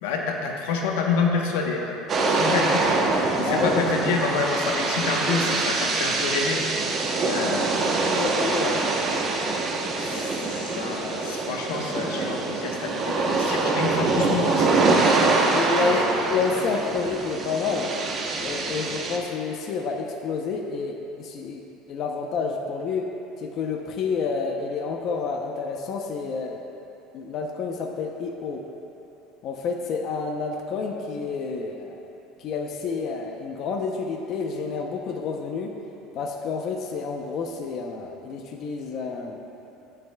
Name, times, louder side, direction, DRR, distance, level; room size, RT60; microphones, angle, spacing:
voice 1, 0.0-3.1 3.4-6.6 7.2-8.3 10.0-14.9 15.8-16.1, left 4 dB, 90° left, 1 dB, 1.0 m, -28 dB
sound 1, 2.1-19.2, right 3 dB, 35° right, 0.8 m, -24 dB
voice 2, 2.4-2.7 3.1-3.8 8.1-8.9 15.5-17.9 18.4-23.1 23.4-26.7 27.1-28.6 29.4-32.0 32.4-35.7 36.1-39.4, left 5 dB, 50° left, 2 dB, 0.6 m, -29 dB
17.0 x 6.6 x 2.3 m, 3.0 s
cardioid pair, 130°, 0 cm